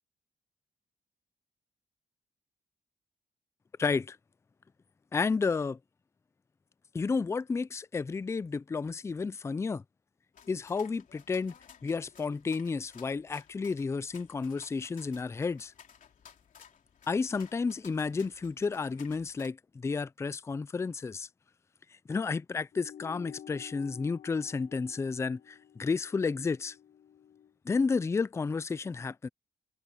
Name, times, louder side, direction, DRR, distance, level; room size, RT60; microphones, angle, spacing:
voice 1, 3.8-4.2 5.1-5.8 6.9-9.8 10.5-11.5 11.8-15.7 17.1-21.3 22.1-26.8 27.7-29.3, left 4 dB, 20° left, 0.4 m, -31 dB
sound 1, 10.3-19.5, left 8 dB, 60° left, 3.2 m, -57 dB
sound 2, 22.7-27.5, left 9 dB, 75° left, 4.2 m, -52 dB
cardioid pair, 130°, 15 cm